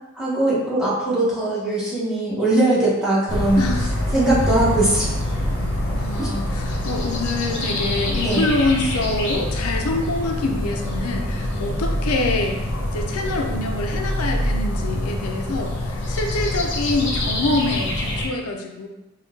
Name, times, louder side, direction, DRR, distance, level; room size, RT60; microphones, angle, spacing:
voice 1, 0.1-3.6 4.1-5.1 6.2-6.3 8.2-8.4, right 2 dB, 5° right, -8 dB, 0.9 m, -20 dB
sound 1, 3.3-18.3, left 1 dB, 55° left, 0.7 m, -25 dB
voice 2, 3.6-3.9 5.9-12.6 12.9-18.9, left 2 dB, 85° left, 3 dB, 0.5 m, -25 dB
3.8 x 2.3 x 3.5 m, 1.0 s
head